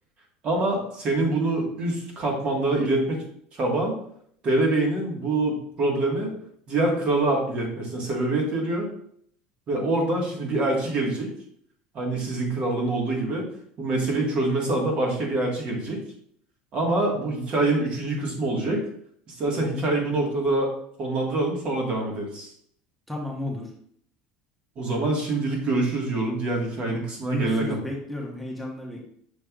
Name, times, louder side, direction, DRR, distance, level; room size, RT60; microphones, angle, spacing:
voice 1, 0.4-3.2 3.6-4.0 4.4-6.3 6.7-8.9 9.7-11.3 11.9-13.5 13.8-16.0 16.7-18.8 19.3-20.7 21.0-22.5 24.8-27.7, right 2 dB, 40° right, -1 dB, 1.5 m, -25 dB
voice 2, 23.1-23.7 26.8-29.0, left 1 dB, ahead, -2 dB, 1.0 m, -33 dB
6.2 x 3.3 x 2.3 m, 0.64 s
supercardioid pair, 125°, 3 cm